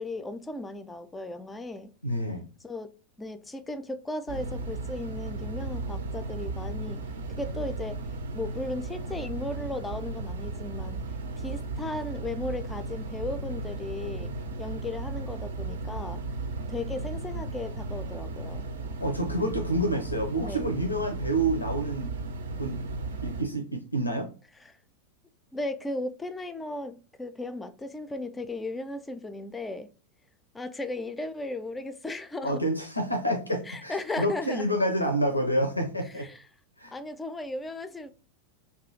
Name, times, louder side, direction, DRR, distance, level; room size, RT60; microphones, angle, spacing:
voice 1, 0.0-1.9 2.6-2.9 3.2-7.0 7.4-8.0 8.3-11.0 11.4-14.3 14.6-16.2 16.7-18.7 20.4-20.7 24.6-24.8 25.5-29.9 30.5-32.6 33.7-34.7 36.1-36.4 36.9-38.1, left 2 dB, 10° left, 0.3 m, -36 dB
voice 2, 2.0-2.4 19.0-22.9 23.2-24.3 32.4-36.3 36.8-36.9, right 1 dB, 85° left, 0.5 m, -28 dB
sound 1, 4.3-23.4, right 3 dB, 65° right, 0.5 m, -35 dB
2.6 x 2.4 x 3.8 m
figure-of-eight pair, 90°, 0 cm